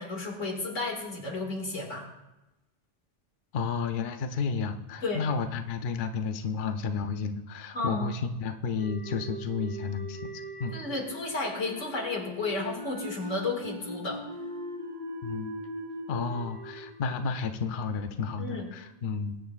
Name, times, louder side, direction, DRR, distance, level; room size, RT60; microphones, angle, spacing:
voice 1, 0.0-2.1 5.0-5.3 7.7-8.1 10.7-14.2 18.4-18.7, left 2 dB, 90° left, 0 dB, 2.4 m, -32 dB
voice 2, 3.5-10.8 15.2-15.5 16.1-19.4, left 5 dB, 55° left, 7 dB, 0.7 m, -32 dB
sound 1, 8.8-18.0, right 1 dB, 30° right, 3.2 m, -41 dB
21.5 x 7.7 x 2.4 m, 0.99 s
omnidirectional pair, 1.2 m